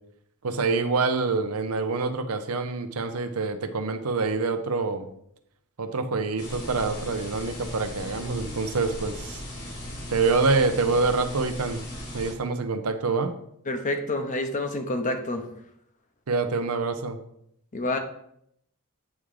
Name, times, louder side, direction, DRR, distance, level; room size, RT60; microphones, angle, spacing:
voice 1, 0.4-5.1 5.8-9.4 10.1-11.8 12.1-13.3 16.3-17.2, right 4 dB, 75° right, 8 dB, 0.7 m, -26 dB
sound 1, 6.4-12.3, left 1 dB, 75° left, 2.6 m, -37 dB
voice 2, 13.7-15.5 17.7-18.0, left 2 dB, 35° left, 6 dB, 0.8 m, -28 dB
8.4 x 3.7 x 4.9 m, 0.72 s
head